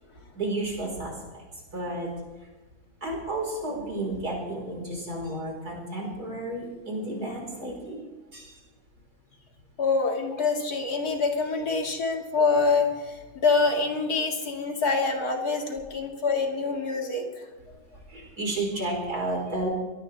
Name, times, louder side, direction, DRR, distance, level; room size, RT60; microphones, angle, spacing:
voice 1, 0.3-1.4 1.7-2.1 3.0-8.0 8.3-8.6 11.8-11.9 17.7-19.7, right 2 dB, 85° right, 0 dB, 5.0 m, -32 dB
voice 2, 9.8-17.4, left 4 dB, 80° left, 2 dB, 2.7 m, -26 dB
22.0 x 16.5 x 3.4 m, 1.2 s
omnidirectional pair, 1.6 m